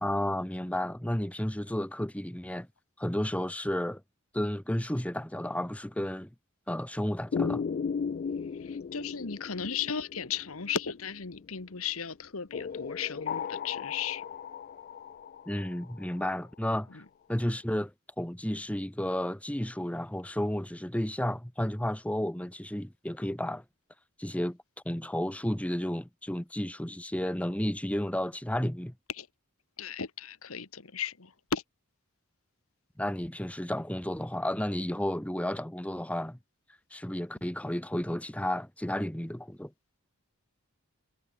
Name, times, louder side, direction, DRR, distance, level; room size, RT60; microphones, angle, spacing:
voice 1, 0.0-2.7 3.0-4.0 4.3-6.3 6.7-7.6 15.5-17.0 17.3-23.6 24.2-24.6 24.8-28.9 33.0-36.4 36.9-39.7, left 1 dB, 5° left, 1.0 m, -32 dB
sound 1, 7.3-11.6 12.5-16.3, left 6 dB, 45° left, 0.3 m, -36 dB
voice 2, 8.4-14.2 16.9-17.0 29.1-29.3 29.8-31.6, left 7 dB, 80° left, 1.6 m, -36 dB
head